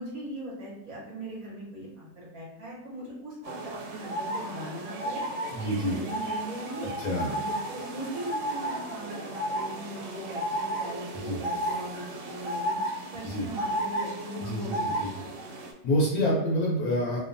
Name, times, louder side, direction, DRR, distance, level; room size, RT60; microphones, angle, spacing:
voice 1, 0.0-5.2 5.8-6.9 7.2-15.3, right 1 dB, 60° right, -5 dB, 1.1 m, -40 dB
sound 1, 3.4-15.7, right 1 dB, 85° right, 1.3 m, -33 dB
voice 2, 5.5-6.0 6.8-7.3 11.1-11.4 13.2-13.5 14.4-15.1 15.8-17.2, equal, 65° left, -4 dB, 1.0 m, -28 dB
2.9 x 2.2 x 2.5 m, 0.90 s
omnidirectional pair, 2.0 m